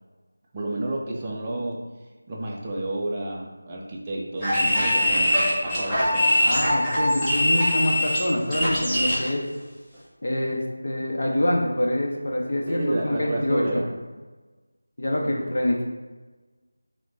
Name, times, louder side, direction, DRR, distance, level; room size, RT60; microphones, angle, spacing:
voice 1, 0.5-1.8 2.3-6.3 12.7-13.9 15.2-15.5, right 1 dB, 15° right, -3 dB, 0.4 m, -30 dB
sound 1, 4.4-9.3, left 1 dB, 5° left, 0.8 m, -22 dB
voice 2, 6.4-9.5 10.2-13.8 15.0-15.8, left 1 dB, 60° left, -1 dB, 0.8 m, -25 dB
5.9 x 2.2 x 2.6 m, 1.3 s
figure-of-eight pair, 175°, 0 cm